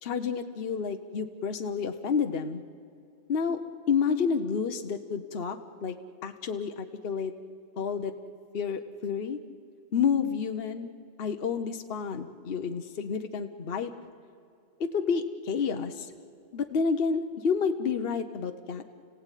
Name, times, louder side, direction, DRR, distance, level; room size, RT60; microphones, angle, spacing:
voice 1, 0.0-2.6 3.3-3.6 3.9-5.9 6.2-7.3 7.8-8.1 8.5-9.4 9.9-10.9 11.2-13.9 14.9-16.1 16.5-18.8, left 6 dB, 60° left, 7 dB, 1.1 m, -29 dB
30.0 x 17.0 x 9.1 m, 2.5 s
omnidirectional pair, 1.2 m